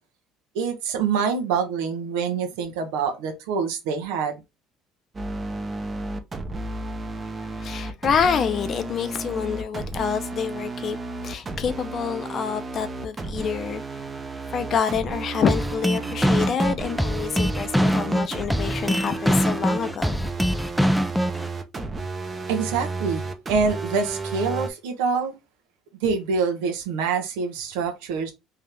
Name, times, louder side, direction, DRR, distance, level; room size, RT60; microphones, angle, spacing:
voice 1, 0.5-4.3 22.5-25.3 26.0-28.3, right 5 dB, 85° right, 0.9 m, -25 dB
sound 1, 5.1-24.7, right 3 dB, 30° right, 0.8 m, -33 dB
voice 2, 7.6-11.0 11.2-13.8 14.5-20.3, left 7 dB, 50° left, 0.7 m, -27 dB
sound 2, 15.5-21.5, equal, ahead, 0.4 m, -23 dB
3.6 x 2.8 x 3.3 m
supercardioid pair, 80°, 0 cm